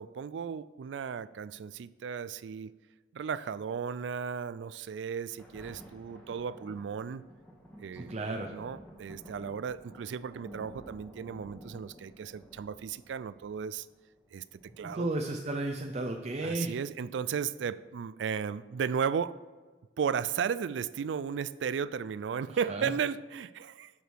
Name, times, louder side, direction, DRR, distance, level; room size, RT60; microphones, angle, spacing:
voice 1, 0.0-2.7 3.1-7.2 7.8-13.9 14.3-14.4 14.8-15.1 16.4-19.4 20.0-23.9, right 7 dB, 85° right, 16 dB, 0.4 m, -35 dB
Thunder, 5.1-16.1 16.7-16.8, equal, 10° left, 1.3 m, -52 dB
voice 2, 7.9-8.5 14.8-16.7 22.5-22.9, right 2 dB, 40° right, 1 dB, 0.6 m, -34 dB
8.3 x 6.0 x 4.6 m, 1.3 s
head